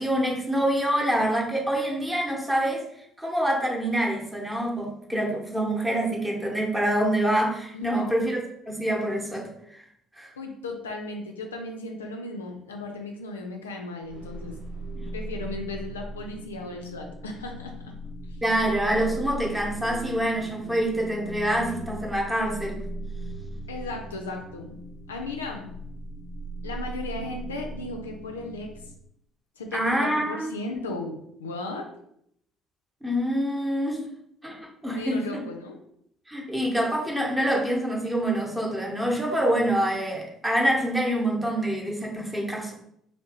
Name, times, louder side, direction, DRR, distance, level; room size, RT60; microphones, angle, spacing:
voice 1, 0.0-2.8 3.2-8.4 8.7-9.8 10.2-10.3 14.9-15.0 18.4-22.8 29.7-30.5 33.0-34.0 34.4-35.2 36.3-42.7, right 1 dB, 10° right, 0 dB, 0.9 m, -26 dB
voice 2, 7.7-8.2 10.4-14.6 15.1-17.7 23.7-24.7 25.1-25.7 26.6-28.7 29.6-31.9 34.9-35.8, left 2 dB, 80° left, 3 dB, 0.4 m, -36 dB
sound 1, 14.0-29.0, right 1 dB, 80° right, 0.7 m, -38 dB
3.0 x 2.7 x 2.9 m, 0.72 s
figure-of-eight pair, 50°, 0 cm